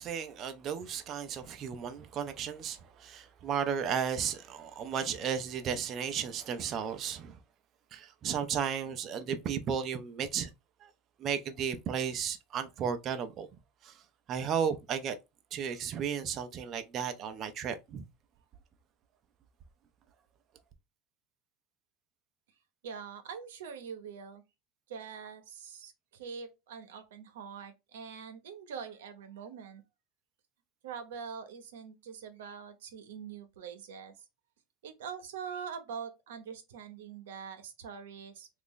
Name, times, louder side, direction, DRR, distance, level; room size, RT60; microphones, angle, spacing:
voice 1, 0.0-7.4 7.9-10.5 10.8-10.9 11.2-13.5 13.8-14.0 14.3-15.2 15.5-18.0, right 7 dB, 40° right, 0.5 m, -34 dB
voice 2, 22.8-24.4 24.9-29.8 30.8-34.1 34.8-38.5, right 6 dB, 90° right, 0.8 m, -44 dB
3.0 x 2.5 x 3.7 m
supercardioid pair, 110°, 0 cm